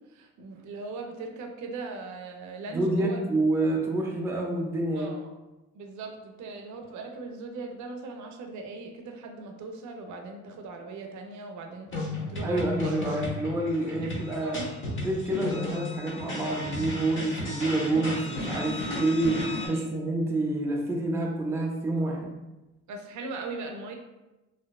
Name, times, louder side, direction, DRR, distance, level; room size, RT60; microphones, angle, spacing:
voice 1, 0.1-3.2 4.9-5.3 5.7-12.9 14.0-14.1 14.4-14.7 19.6-19.9 22.9-23.9, right 3 dB, 70° right, 3 dB, 0.5 m, -39 dB
voice 2, 2.7-5.1 12.4-14.6 15.0-22.3, right 2 dB, 10° right, -1 dB, 0.4 m, -28 dB
sound 1, 11.9-19.7, left 1 dB, 40° left, 0.9 m, -34 dB
2.5 x 2.2 x 2.3 m, 1.0 s
cardioid pair, 90°, 30 cm